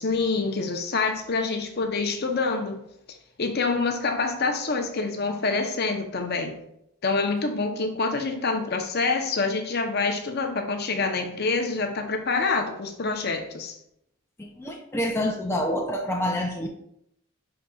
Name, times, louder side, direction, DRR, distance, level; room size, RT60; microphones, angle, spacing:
voice 1, 0.0-2.8 3.4-6.6 7.0-13.8, left 4 dB, 50° left, 0.7 m, -26 dB
voice 2, 14.4-16.7, left 1 dB, 10° left, 0.5 m, -27 dB
10.5 x 3.8 x 2.3 m
head